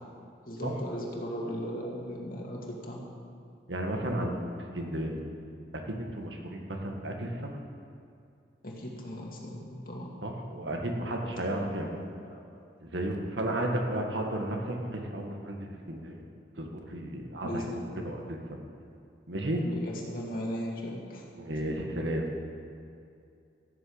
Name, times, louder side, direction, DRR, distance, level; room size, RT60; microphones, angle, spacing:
voice 1, 0.5-3.0 8.6-10.1 11.5-11.6 12.3-12.4 17.4-17.9 19.6-21.2, equal, 50° left, -3 dB, 2.4 m, -37 dB
voice 2, 3.7-5.2 5.7-7.6 10.2-12.1 12.8-16.2 16.6-18.6 19.3-19.6 21.4-22.3, right 1 dB, 90° right, 1 dB, 1.8 m, -33 dB
15.0 x 7.0 x 8.0 m, 2.5 s
head